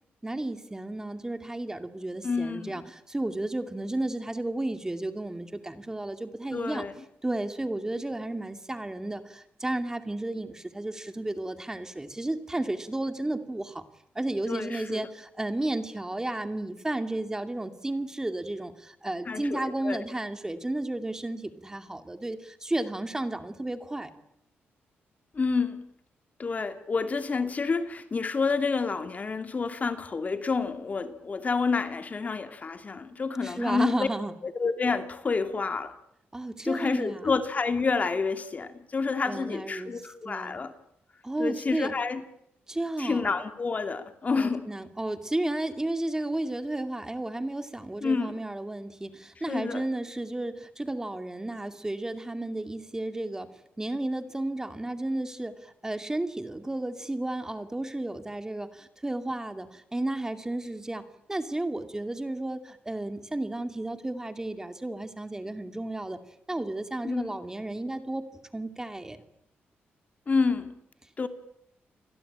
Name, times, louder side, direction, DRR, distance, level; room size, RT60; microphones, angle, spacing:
voice 1, 0.2-6.8 7.2-13.8 14.1-24.1 33.4-34.3 36.3-37.3 39.3-40.6 41.2-41.9 42.7-43.3 44.3-53.5 53.8-66.2 66.5-68.2 68.5-69.2, right 1 dB, 15° right, 2.4 m, -33 dB
voice 2, 2.2-2.8 6.5-6.9 14.5-15.0 19.3-20.0 25.3-25.8 26.4-34.1 34.4-35.9 36.6-40.7 41.4-42.2 43.0-44.7 48.0-48.4 49.5-49.9 67.0-67.3 70.3-70.7 71.2-71.3, left 4 dB, 40° left, 2.7 m, -29 dB
29.5 x 21.5 x 8.9 m
cardioid pair, 95°, 4 cm